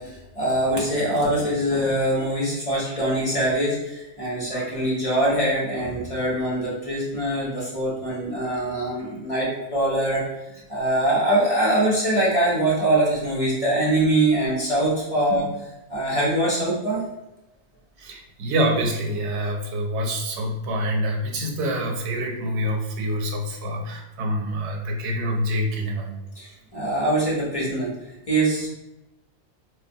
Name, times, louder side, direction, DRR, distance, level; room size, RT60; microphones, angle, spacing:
voice 1, 0.0-10.2 10.7-15.4 15.9-17.0 26.4-27.9 28.3-28.7, right 1 dB, 35° left, -6 dB, 0.8 m, -23 dB
voice 2, 18.0-26.1, equal, 85° right, 2 dB, 0.9 m, -26 dB
3.4 x 2.2 x 2.6 m, 0.96 s
omnidirectional pair, 1.1 m